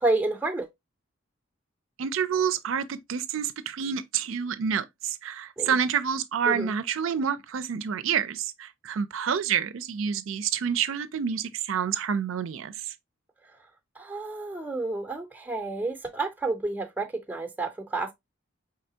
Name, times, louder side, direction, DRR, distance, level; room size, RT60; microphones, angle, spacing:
voice 1, 0.0-0.7 5.6-5.8 6.5-6.7 14.0-18.1, right 2 dB, 10° right, 0.6 m, -30 dB
voice 2, 2.0-12.7, right 7 dB, 75° right, 0.4 m, -28 dB
4.8 x 3.3 x 2.7 m
head